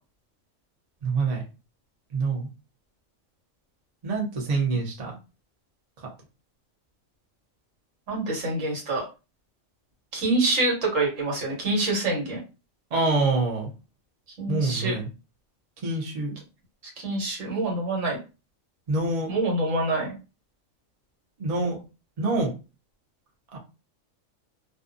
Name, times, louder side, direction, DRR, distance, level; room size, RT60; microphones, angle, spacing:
voice 1, 1.0-1.4 2.1-2.5 4.0-5.2 6.0-6.1 12.9-13.7 14.5-15.1 15.8-16.3 18.9-19.3 21.4-21.8 22.2-22.5 23.5-23.6, right 3 dB, 40° right, -1 dB, 0.6 m, -26 dB
voice 2, 8.1-9.0 10.1-12.4 14.4-14.9 17.0-18.2 19.3-20.1, right 2 dB, 70° right, 0 dB, 1.3 m, -26 dB
2.6 x 2.2 x 2.5 m, 0.29 s
omnidirectional pair, 1.4 m